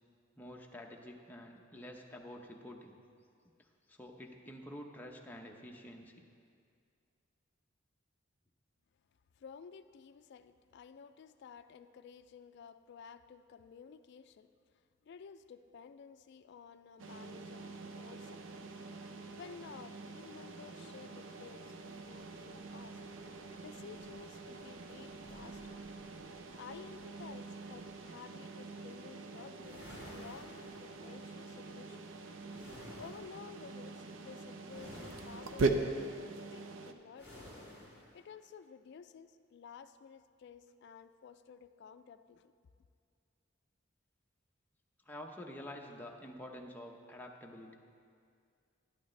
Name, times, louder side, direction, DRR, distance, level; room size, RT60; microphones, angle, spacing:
voice 1, 0.4-3.0 3.9-6.3 45.1-47.8, left 1 dB, 10° left, 0 dB, 0.7 m, -48 dB
voice 2, 9.4-14.5 15.0-18.5 19.4-23.0 23.6-25.8 26.6-32.0 33.0-37.5 38.1-42.5, left 6 dB, 60° left, 11 dB, 0.3 m, -53 dB
sound 1, 17.0-36.9, right 3 dB, 70° right, 0.6 m, -42 dB
sound 2, 21.2-28.2, left 1 dB, 35° left, 1.6 m, -65 dB
sound 3, 29.6-31.2 32.5-33.4 34.7-35.8 37.2-38.1, left 1 dB, 20° right, 2.9 m, -52 dB
11.5 x 11.0 x 3.2 m, 2.3 s
head